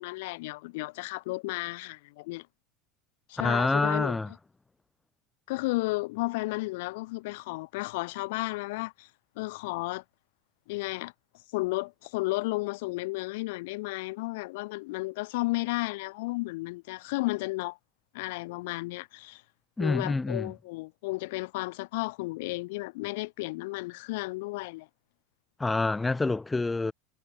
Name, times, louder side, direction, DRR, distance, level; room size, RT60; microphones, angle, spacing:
voice 1, 0.0-2.5 3.3-4.2 5.5-9.1 9.4-10.0 10.7-11.1 11.5-17.8 18.1-19.4 19.8-24.9, left 23 dB, 70° left, 4.6 m, -33 dB
voice 2, 3.4-4.3 19.8-20.5 25.6-26.9, left 3 dB, 10° left, 2.2 m, -27 dB
supercardioid pair, 125°, 0 cm